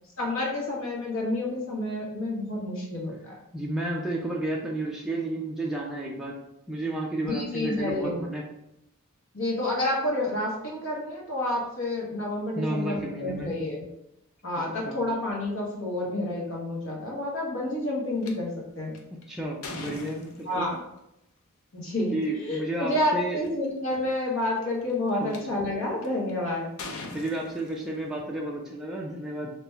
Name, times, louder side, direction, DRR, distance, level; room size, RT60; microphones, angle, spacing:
voice 1, 0.2-3.4 7.2-8.2 9.3-13.8 14.4-18.9 20.4-20.8 21.7-26.7, left 1 dB, 60° left, -3 dB, 1.1 m, -29 dB
voice 2, 3.5-6.4 6.7-8.4 12.6-13.5 14.6-15.0 19.3-20.7 22.1-23.4 25.2-25.4 27.1-29.5, right 1 dB, ahead, -3 dB, 0.4 m, -32 dB
sound 1, 18.2-18.3 18.9-20.8 22.1-22.3 22.9-23.0 23.2-23.7 24.4-25.4 26.0-26.3 26.8-28.2, left 3 dB, 75° left, 0.6 m, -41 dB
3.1 x 3.0 x 3.4 m, 0.84 s
head